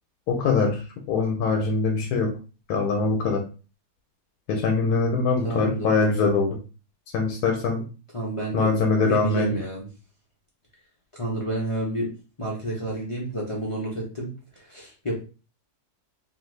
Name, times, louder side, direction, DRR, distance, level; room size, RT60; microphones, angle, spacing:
voice 1, 0.3-0.8 1.1-2.3 2.7-3.4 4.5-6.6 7.1-7.8 8.5-9.5, left 4 dB, 75° left, 2 dB, 1.1 m, -23 dB
voice 2, 5.4-5.9 8.1-8.7 9.0-9.9 11.1-12.1 12.4-15.2, right 1 dB, 50° left, -5 dB, 0.3 m, -30 dB
2.7 x 2.5 x 3.1 m, 0.34 s
omnidirectional pair, 1.7 m